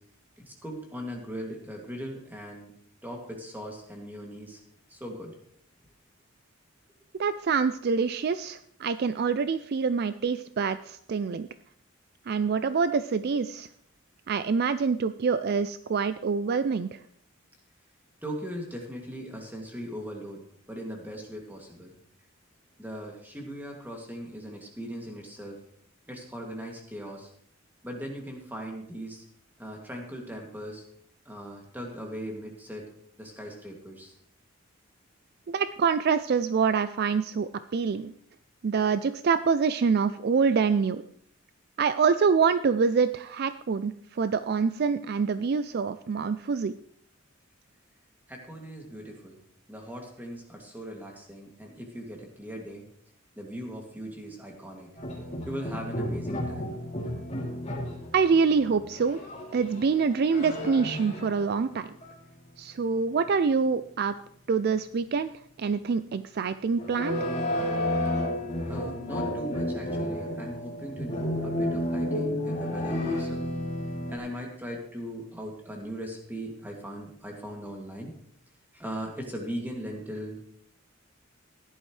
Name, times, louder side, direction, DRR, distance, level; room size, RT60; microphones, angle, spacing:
voice 1, 0.4-2.7 3.0-4.6 4.9-5.3 18.2-20.4 20.7-21.9 22.8-25.6 26.1-27.3 27.8-29.2 29.6-30.8 31.3-32.9 33.2-34.1 48.3-49.4 49.7-52.9 53.4-54.9 55.5-57.0 68.7-73.4 74.1-78.1 78.7-80.5, equal, 10° right, 0 dB, 2.3 m, -39 dB
voice 2, 7.2-11.5 12.3-13.7 14.3-17.0 35.5-38.1 38.6-41.0 41.8-46.7 58.1-59.2 59.5-61.9 62.6-64.1 64.5-65.3 65.6-67.2, right 5 dB, 50° right, 13 dB, 0.4 m, -26 dB
sound 1, 55.0-61.7 62.0-62.1 66.8-74.2, left 1 dB, 30° left, 3.0 m, -32 dB
15.0 x 11.0 x 3.2 m, 0.66 s
head